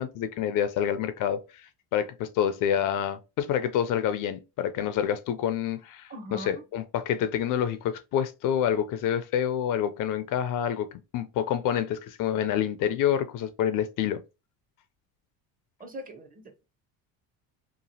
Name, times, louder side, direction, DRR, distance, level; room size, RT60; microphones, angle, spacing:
voice 1, 0.0-10.9 11.1-14.2, left 9 dB, 55° left, 0.4 m, -27 dB
voice 2, 6.1-6.6 15.8-16.6, equal, 20° right, 0.6 m, -41 dB
2.9 x 2.4 x 2.7 m
supercardioid pair, 110°, 40 cm